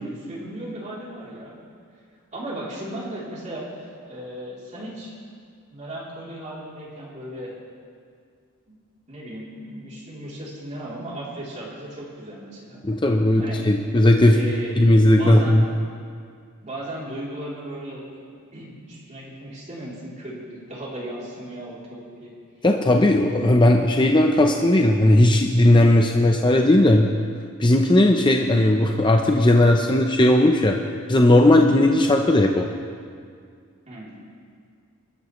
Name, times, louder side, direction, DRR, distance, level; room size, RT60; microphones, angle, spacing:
voice 1, 0.0-1.6 2.3-5.1 5.7-7.5 8.7-8.8 9.1-12.8 13.4-13.6 14.2-14.8 15.1-15.6 16.6-22.3 33.9-34.2, right 1 dB, 35° right, -6 dB, 3.3 m, -36 dB
voice 2, 12.8-14.4 14.8-15.6 22.6-27.1 27.6-30.8 31.1-32.7, left 1 dB, 20° left, 2 dB, 0.7 m, -17 dB
25.5 x 13.0 x 3.2 m, 2.2 s
head